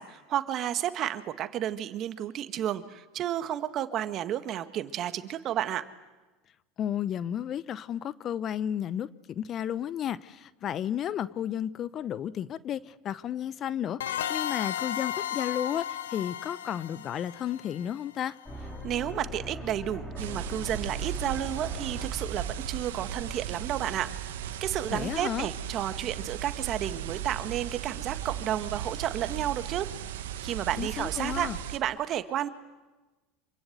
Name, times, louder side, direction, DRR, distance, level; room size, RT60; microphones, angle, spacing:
voice 1, 0.0-5.9 18.8-29.9 30.4-32.5, right 11 dB, 45° right, 1.7 m, -32 dB
voice 2, 6.8-18.4 24.9-25.5 30.8-31.6, left 10 dB, 40° left, 0.8 m, -33 dB
sound 1, 14.0-18.5, left 11 dB, 80° left, 0.8 m, -34 dB
sound 2, 18.5-24.4, left 1 dB, 10° left, 4.8 m, -41 dB
sound 3, 20.2-31.8, right 10 dB, 75° right, 1.6 m, -37 dB
26.5 x 24.5 x 8.1 m
hypercardioid pair, 85°, 0 cm